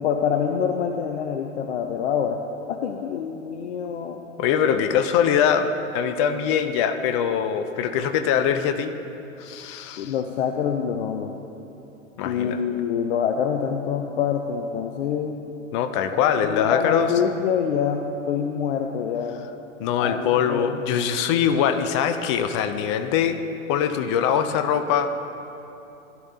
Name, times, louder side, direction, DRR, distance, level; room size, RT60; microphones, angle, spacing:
voice 1, 0.0-2.4 2.7-4.2 10.0-11.4 12.2-15.4 16.4-19.4 20.0-20.8, left 7 dB, 50° left, 4 dB, 0.7 m, -26 dB
voice 2, 4.4-8.9 9.4-10.1 12.2-12.6 15.7-17.1 19.8-23.4 23.7-25.1, left 8 dB, 25° left, 9 dB, 0.4 m, -22 dB
16.5 x 12.0 x 2.8 m, 2.9 s
hypercardioid pair, 110°, 41 cm